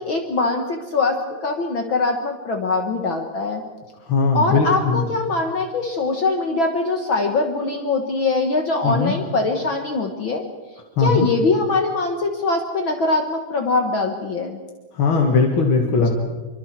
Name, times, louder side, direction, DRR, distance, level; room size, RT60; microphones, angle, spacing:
voice 1, 0.0-3.6 4.3-10.4 11.0-14.6, left 3 dB, 65° left, 4 dB, 1.2 m, -22 dB
voice 2, 4.0-5.1 8.8-9.2 11.0-11.3 14.9-16.1, left 4 dB, 45° left, 2 dB, 1.8 m, -19 dB
27.5 x 24.5 x 4.7 m, 1.4 s
omnidirectional pair, 4.3 m